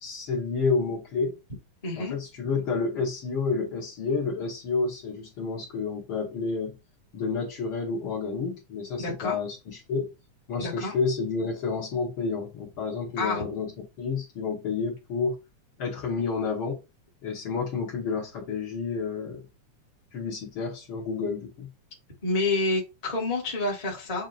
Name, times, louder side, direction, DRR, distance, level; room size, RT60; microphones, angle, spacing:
voice 1, 0.0-1.4 2.0-6.7 7.1-10.1 10.5-13.7 14.0-15.3 15.8-16.8 17.2-19.4 20.1-21.7, left 4 dB, 55° left, 1.7 m, -30 dB
voice 2, 1.8-2.1 9.0-9.4 10.6-10.9 13.2-13.4 22.2-24.3, left 2 dB, 20° left, 0.9 m, -28 dB
7.6 x 2.8 x 2.5 m
omnidirectional pair, 3.4 m